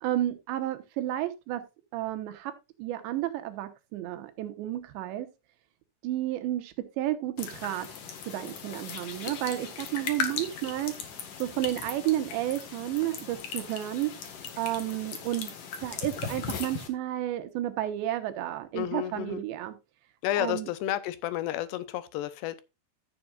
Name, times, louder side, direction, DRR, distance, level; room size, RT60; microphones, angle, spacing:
voice 1, 0.0-1.6 1.9-2.5 2.8-5.3 6.0-7.9 8.3-11.0 11.4-14.1 14.6-15.5 15.8-19.8 20.4-20.7, right 14 dB, 80° right, 3.3 m, -31 dB
sound 1, 7.4-16.9, left 7 dB, 55° left, 2.9 m, -38 dB
voice 2, 18.7-19.4 20.2-22.6, left 13 dB, 75° left, 2.8 m, -31 dB
15.0 x 7.2 x 2.5 m
omnidirectional pair, 5.2 m